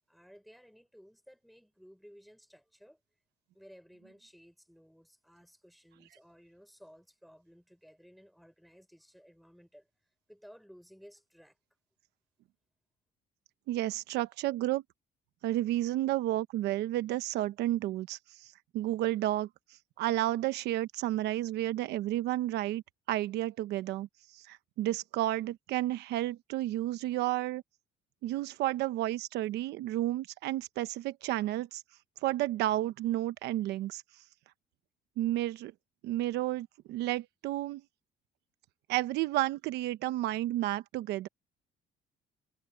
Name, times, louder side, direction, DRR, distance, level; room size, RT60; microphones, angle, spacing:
voice 1, 0.1-3.0 3.5-9.9 10.3-11.6, equal, ahead, 5.2 m, -57 dB
voice 2, 13.7-14.8 15.4-19.5 20.0-22.8 23.1-27.6 28.2-31.8 32.2-34.2 35.2-35.7 36.0-37.8 38.9-41.3, right 15 dB, 80° right, 1.0 m, -31 dB
cardioid pair, 110°, 17 cm